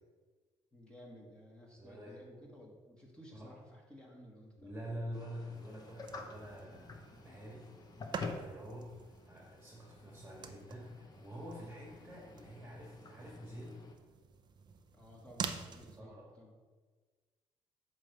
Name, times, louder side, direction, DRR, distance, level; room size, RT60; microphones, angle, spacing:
voice 1, 0.7-4.8 14.9-16.6, equal, 10° left, -3 dB, 1.5 m, -55 dB
voice 2, 1.8-2.2 3.3-3.5 4.6-7.7 8.0-8.9 9.2-13.9 16.0-16.3, equal, 15° right, -3 dB, 1.6 m, -47 dB
sound 1, 5.1-13.9, left 3 dB, 35° left, 0.9 m, -50 dB
sound 2, 5.5-16.0, right 5 dB, 40° right, 0.6 m, -48 dB
8.7 x 3.3 x 6.5 m, 1.4 s
cardioid pair, 130°, 12 cm